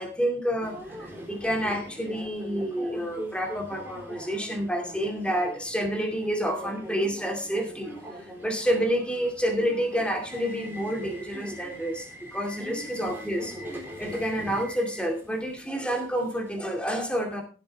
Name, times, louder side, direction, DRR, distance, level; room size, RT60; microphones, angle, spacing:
voice 1, 0.0-17.4, equal, 5° left, 2 dB, 2.4 m, -29 dB
Subway metro underground, 0.6-16.6, equal, 10° right, 3.6 m, -41 dB
16.5 x 8.3 x 3.4 m, 0.37 s
head